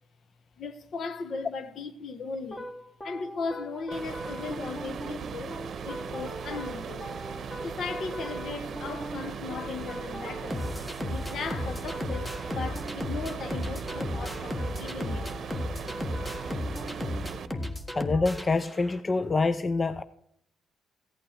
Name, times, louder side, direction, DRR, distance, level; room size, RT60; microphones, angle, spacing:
voice 1, 0.6-2.7 3.0-5.6 5.8-7.1 7.6-10.7 11.0-15.3, left 4 dB, 60° left, 1.1 m, -37 dB
sound 1, 2.5-19.2, left 1 dB, 10° left, 1.5 m, -36 dB
sound 2, 3.9-17.5, right 6 dB, 55° right, 0.9 m, -38 dB
voice 2, 17.9-20.0, left 3 dB, 30° left, 0.5 m, -26 dB
15.0 x 8.8 x 5.1 m
cardioid pair, 90°, 0 cm